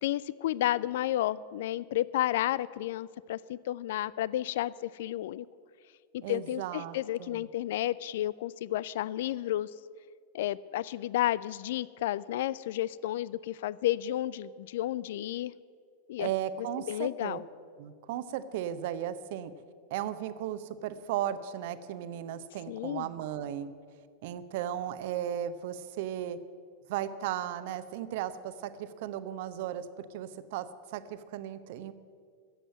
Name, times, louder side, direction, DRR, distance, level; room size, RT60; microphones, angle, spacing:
voice 1, 0.0-5.5 6.3-9.7 10.3-15.5 16.1-16.3 16.9-17.4 22.7-23.1, left 14 dB, 55° left, 20 dB, 0.3 m, -31 dB
voice 2, 6.2-7.5 16.2-17.4 17.8-19.5 19.9-23.7 24.2-26.4 26.9-31.9, right 11 dB, 50° right, 12 dB, 0.8 m, -36 dB
14.0 x 7.9 x 9.5 m, 2.1 s
figure-of-eight pair, 90°, 0 cm